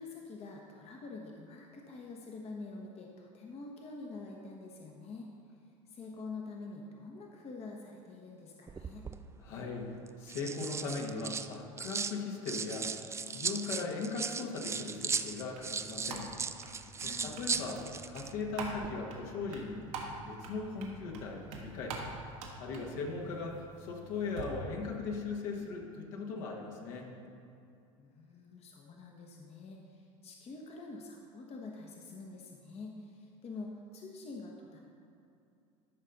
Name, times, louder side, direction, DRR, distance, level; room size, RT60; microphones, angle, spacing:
voice 1, 0.0-5.3 5.9-9.0 17.0-17.3 28.0-34.8, left 3 dB, 35° left, 0 dB, 1.1 m, -46 dB
sound 1, 8.7-9.2 10.1-12.2 12.5-18.3 18.6-18.9, right 5 dB, 15° right, 0.3 m, -37 dB
voice 2, 9.4-9.9 10.2-16.3 17.0-19.8 20.2-22.1 22.6-27.1, left 4 dB, 60° left, 0 dB, 1.5 m, -39 dB
sound 2, 14.8-24.4, right 3 dB, 70° right, 1.5 m, -46 dB
13.5 x 5.5 x 4.0 m, 2.6 s
hypercardioid pair, 75°, 18 cm